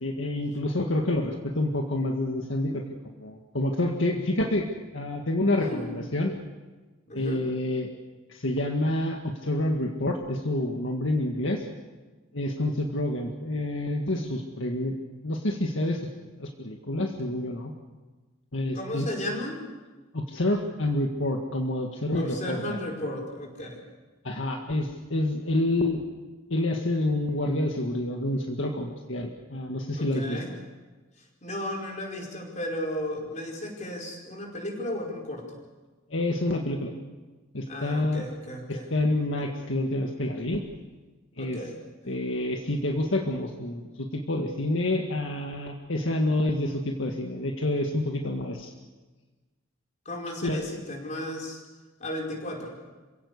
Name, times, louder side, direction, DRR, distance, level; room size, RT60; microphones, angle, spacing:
voice 1, 0.0-2.8 3.2-4.7 4.9-6.3 7.1-7.9 8.3-11.7 12.3-15.0 15.2-16.0 16.4-17.7 18.5-19.1 20.1-22.8 24.2-26.0 26.5-30.4 36.1-36.9 37.5-38.3 38.7-40.6 41.4-41.6 42.1-48.7 50.4-50.6, left 1 dB, 70° left, 2 dB, 1.9 m, -28 dB
voice 2, 5.5-5.9 7.1-7.4 18.7-19.6 22.1-23.8 29.9-30.5 31.4-35.6 37.7-38.9 41.4-41.8 50.0-51.6 52.0-52.7, left 1 dB, 35° left, 1 dB, 5.1 m, -34 dB
27.5 x 17.0 x 8.3 m, 1.3 s
head